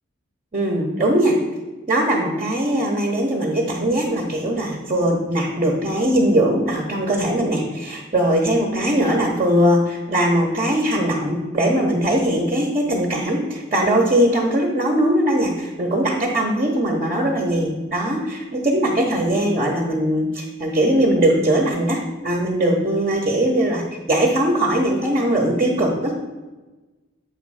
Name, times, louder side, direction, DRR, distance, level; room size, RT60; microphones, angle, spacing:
voice 1, 0.5-1.4 1.9-23.8 24.1-26.3, right 1 dB, 35° right, -1 dB, 1.0 m, -20 dB
7.9 x 3.2 x 6.3 m, 1.2 s
head